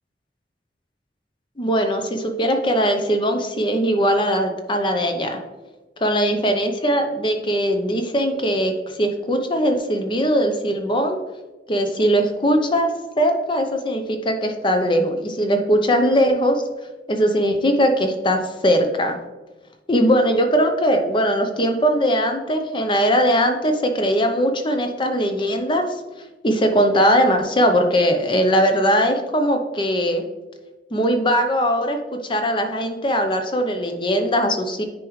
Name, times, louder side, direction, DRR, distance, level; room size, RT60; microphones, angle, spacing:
voice 1, 1.6-5.4 6.0-8.7 9.0-11.2 11.7-12.9 13.2-16.6 17.1-19.2 19.9-25.8 26.4-30.2 30.9-34.8, equal, 30° left, 5 dB, 0.8 m, -20 dB
9.5 x 4.9 x 3.2 m, 1.1 s
head